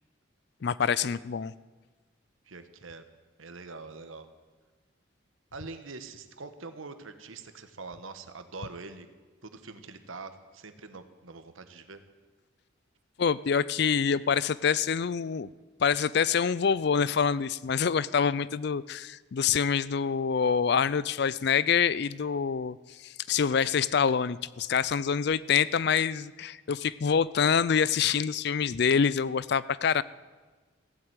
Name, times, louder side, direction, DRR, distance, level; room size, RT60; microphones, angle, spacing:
voice 1, 0.6-1.5 13.2-15.5 15.8-30.0, left 6 dB, 55° left, 19 dB, 0.4 m, -26 dB
voice 2, 2.5-3.0 3.4-4.3 5.5-9.1 9.4-12.0, right 3 dB, 90° right, 9 dB, 1.2 m, -44 dB
15.5 x 7.9 x 9.0 m, 1.4 s
head